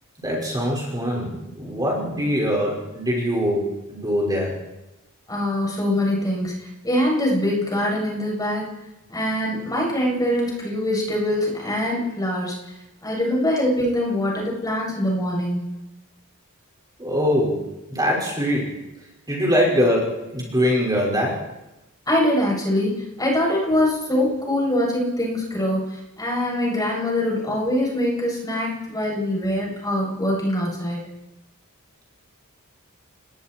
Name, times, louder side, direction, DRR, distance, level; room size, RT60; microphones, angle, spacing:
voice 1, 0.2-4.6 17.0-18.8 19.3-21.4, equal, 20° right, -3 dB, 5.5 m, -23 dB
voice 2, 5.3-6.5 6.8-8.6 9.1-12.5 13.0-15.6 22.1-22.9 23.2-25.9 26.2-31.0, left 1 dB, 15° left, -3 dB, 8.0 m, -23 dB
29.5 x 21.5 x 4.6 m, 0.98 s
head